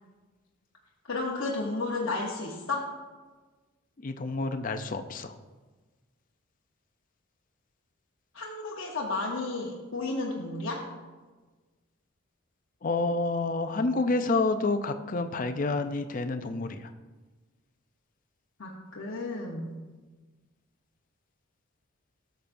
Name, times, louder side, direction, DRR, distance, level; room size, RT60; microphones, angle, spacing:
voice 1, 1.1-3.0 8.3-10.9 18.6-19.7, left 3 dB, 65° left, -3 dB, 0.9 m, -32 dB
voice 2, 4.0-5.3 12.8-16.9, left 3 dB, 40° left, 8 dB, 0.4 m, -29 dB
13.0 x 6.7 x 2.6 m, 1.3 s
head